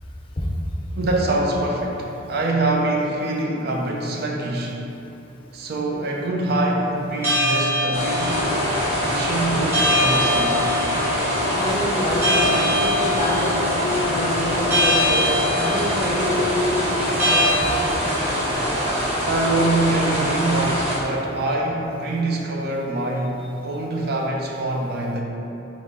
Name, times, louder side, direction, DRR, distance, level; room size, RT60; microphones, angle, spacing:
voice 1, 1.0-4.8 5.5-8.5 9.0-10.8 19.2-25.2, right 2 dB, 55° right, 0 dB, 0.5 m, -24 dB
sound 1, 7.2-17.5, left 1 dB, 15° right, 1.0 m, -24 dB
sound 2, 7.9-21.0, equal, 30° right, 1.0 m, -24 dB
voice 2, 11.5-15.3 15.6-18.1 19.1-19.2 20.3-20.4, left 1 dB, 30° left, -3 dB, 0.5 m, -27 dB
4.0 x 3.7 x 3.6 m, 2.9 s
head